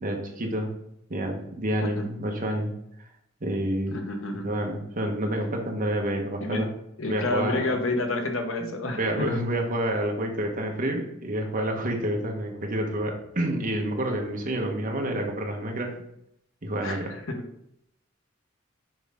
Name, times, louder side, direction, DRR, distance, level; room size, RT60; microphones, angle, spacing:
voice 1, 0.0-0.7 1.1-2.7 3.4-3.9 4.4-6.7 7.1-7.6 8.6-8.7 9.0-15.9 16.6-17.1, right 1 dB, 45° right, 2 dB, 1.1 m, -28 dB
voice 2, 3.9-4.5 6.4-6.7 7.0-9.4 16.8-17.4, left 2 dB, 75° left, 4 dB, 1.0 m, -29 dB
6.2 x 4.9 x 3.6 m, 0.78 s
head